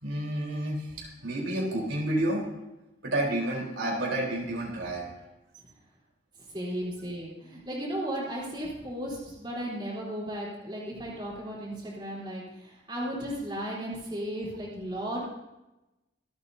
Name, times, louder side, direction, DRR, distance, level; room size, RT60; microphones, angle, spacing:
voice 1, 0.0-2.4 3.0-5.1 6.8-6.9, right 1 dB, 85° right, -2 dB, 4.0 m, -30 dB
voice 2, 6.4-15.2, equal, 25° right, -5 dB, 3.8 m, -35 dB
25.5 x 8.9 x 2.8 m, 0.97 s
head